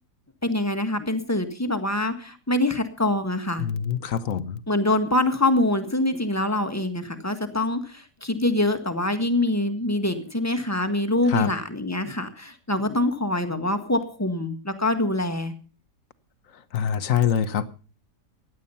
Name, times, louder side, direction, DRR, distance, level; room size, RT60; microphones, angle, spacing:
voice 1, 0.4-3.7 4.7-15.5, left 1 dB, 10° left, 1.4 m, -25 dB
voice 2, 3.6-4.6 11.3-11.5 16.7-17.7, left 8 dB, 55° left, 1.3 m, -24 dB
16.0 x 11.0 x 5.6 m
omnidirectional pair, 1.8 m